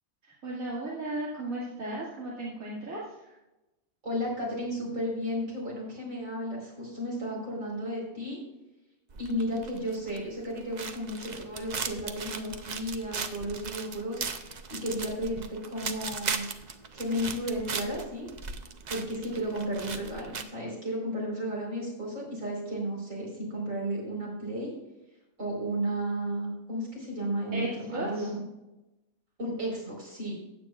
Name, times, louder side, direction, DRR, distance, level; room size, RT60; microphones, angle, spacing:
voice 1, 0.2-3.3 27.5-28.3, right 2 dB, 90° right, -7 dB, 2.5 m, -35 dB
voice 2, 4.0-8.4 9.2-16.4 16.9-18.3 18.9-24.7 25.4-28.4 29.4-30.3, equal, 70° right, -3 dB, 4.7 m, -33 dB
sound 1, 9.1-20.4, right 5 dB, 45° right, 0.6 m, -38 dB
15.5 x 9.2 x 2.4 m, 0.99 s
omnidirectional pair, 1.4 m